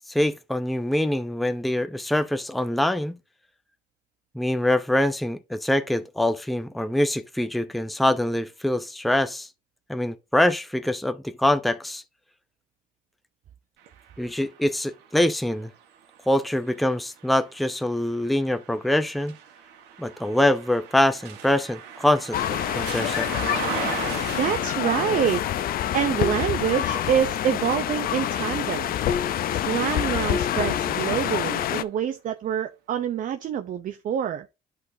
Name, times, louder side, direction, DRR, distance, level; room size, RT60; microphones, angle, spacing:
voice 1, 0.1-3.2 4.3-9.5 9.9-12.0 14.2-15.7 16.3-19.4 20.0-22.4 22.7-23.3, left 1 dB, ahead, 0.6 m, -24 dB
sound 1, 13.8-29.7 30.3-31.5, right 7 dB, 85° right, 1.3 m, -40 dB
sound 2, 22.3-31.8, left 10 dB, 60° left, 0.6 m, -26 dB
voice 2, 24.3-25.4 25.9-28.9 29.5-34.5, right 9 dB, 50° right, 0.7 m, -26 dB
11.0 x 4.0 x 2.7 m
cardioid pair, 110°, 17 cm